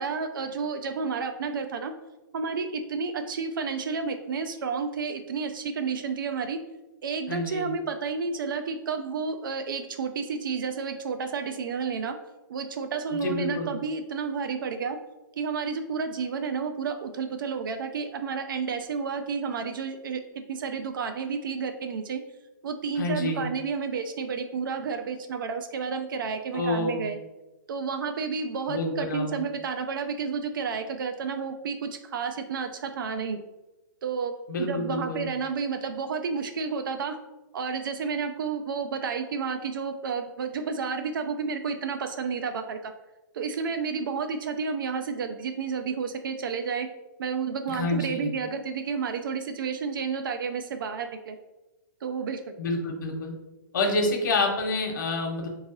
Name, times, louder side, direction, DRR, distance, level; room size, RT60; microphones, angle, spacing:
voice 1, 0.0-1.9 2.3-6.6 7.0-12.1 12.5-15.0 15.4-20.2 20.5-22.2 22.6-27.2 27.7-33.4 34.0-34.3 34.6-37.2 37.5-42.9 43.3-46.9 47.2-51.4 52.0-52.5, right 5 dB, 75° right, 7 dB, 0.4 m, -31 dB
voice 2, 7.3-7.7 13.1-13.7 23.0-23.4 26.5-27.0 28.7-29.4 34.5-35.2 47.7-48.3 52.6-53.3 53.7-55.5, left 2 dB, 60° left, 2 dB, 1.0 m, -28 dB
3.6 x 3.1 x 3.9 m, 1.0 s
hypercardioid pair, 160°, 11 cm